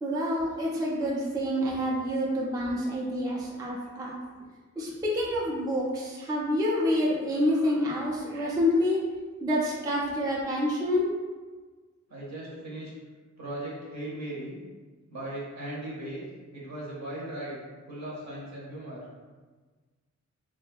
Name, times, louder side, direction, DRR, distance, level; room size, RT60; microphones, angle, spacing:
voice 1, 0.0-4.1 4.8-9.0 9.4-11.1, left 1 dB, 15° right, -4 dB, 0.4 m, -27 dB
voice 2, 12.1-12.9 13.4-14.6 15.1-16.2 16.5-17.6 17.9-19.0, right 1 dB, 60° right, -5 dB, 0.8 m, -38 dB
2.6 x 2.2 x 2.5 m, 1.4 s
wide cardioid pair, 115°, 31 cm